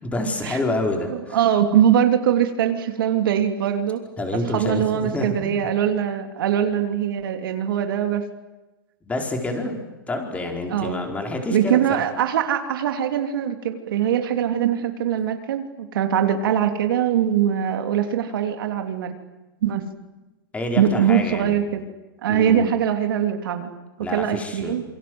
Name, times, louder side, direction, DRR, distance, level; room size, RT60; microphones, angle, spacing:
voice 1, 0.0-1.4 4.2-5.6 9.0-9.8 10.1-12.0 20.5-21.6 22.3-22.7 24.0-24.8, left 1 dB, 10° left, 3 dB, 4.8 m, -27 dB
voice 2, 1.1-4.0 4.3-8.3 10.7-11.0 11.5-19.1 19.6-19.8 20.8-21.8 22.2-23.7 24.1-24.8, right 9 dB, 75° right, 6 dB, 3.3 m, -22 dB
27.5 x 24.0 x 8.0 m, 1.1 s
hypercardioid pair, 140°, 12 cm